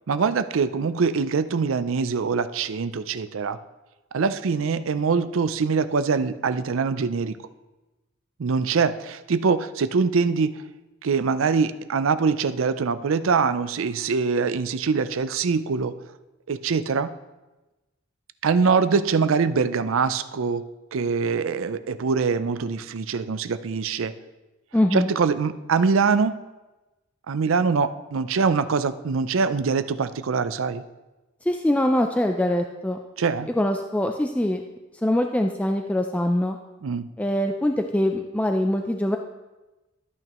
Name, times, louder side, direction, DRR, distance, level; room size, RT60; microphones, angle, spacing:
voice 1, 0.1-3.6 4.1-7.4 8.4-10.5 11.0-15.9 16.5-17.1 18.4-20.6 20.9-24.1 24.9-26.4 27.3-30.8 33.2-33.5 36.8-37.1, right 5 dB, 80° right, 12 dB, 0.5 m, -23 dB
voice 2, 24.7-25.1 31.5-33.0 33.6-34.6 35.0-36.6 37.2-39.2, left 1 dB, 5° left, 4 dB, 0.4 m, -23 dB
13.0 x 8.8 x 3.0 m, 1.1 s
head